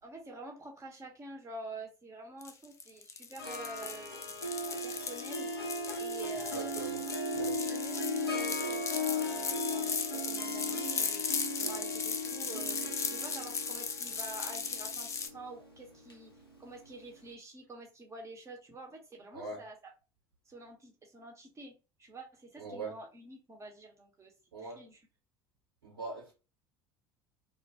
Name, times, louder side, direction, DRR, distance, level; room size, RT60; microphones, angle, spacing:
voice 1, 0.0-4.4 4.8-5.5 6.0-6.9 7.6-11.2 11.6-12.8 13.0-16.3 16.6-19.9 20.4-24.3 24.6-25.0, right 2 dB, 25° right, 0.8 m, -48 dB
sound 1, 2.4-15.3, left 5 dB, 25° left, 0.4 m, -37 dB
Harp, 3.4-16.9, left 1 dB, 90° left, 0.4 m, -37 dB
voice 2, 6.2-7.0 7.3-7.6 19.3-19.6 22.6-22.9 24.5-24.8 25.8-26.3, right 3 dB, 75° right, 1.1 m, -42 dB
2.2 x 2.1 x 2.7 m
figure-of-eight pair, 65°, 12 cm